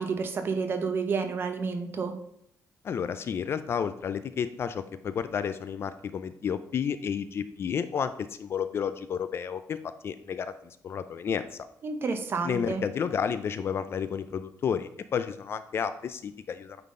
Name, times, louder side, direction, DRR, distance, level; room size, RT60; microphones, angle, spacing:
voice 1, 0.0-2.1 11.8-12.8, right 5 dB, 35° right, 7 dB, 0.7 m, -30 dB
voice 2, 2.8-11.6 12.4-16.8, left 7 dB, 40° left, 12 dB, 0.3 m, -31 dB
8.9 x 3.9 x 3.7 m, 0.71 s
cardioid pair, 170°, 6 cm